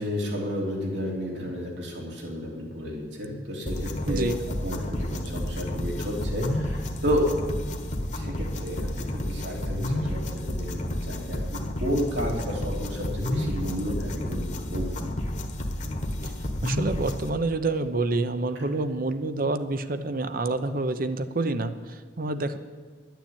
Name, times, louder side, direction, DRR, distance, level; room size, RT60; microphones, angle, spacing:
voice 1, 0.0-4.2 4.6-7.2 8.1-15.2, equal, 80° right, -2 dB, 3.3 m, -32 dB
sound 1, 3.7-17.3, left 1 dB, 40° left, 1.3 m, -31 dB
voice 2, 16.6-22.6, right 2 dB, 50° right, 11 dB, 0.8 m, -28 dB
11.5 x 9.1 x 8.6 m, 1.5 s
head